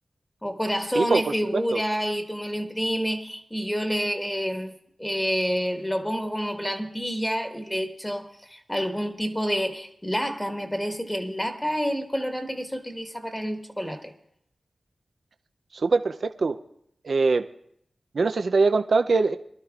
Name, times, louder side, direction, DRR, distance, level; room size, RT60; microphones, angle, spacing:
voice 1, 0.4-4.7 5.0-14.1, equal, 10° left, 1.6 m, -28 dB
voice 2, 15.8-16.6 17.1-17.4 18.2-19.4, right 4 dB, 65° right, 0.4 m, -22 dB
23.5 x 12.0 x 2.4 m
cardioid pair, 60°, 0 cm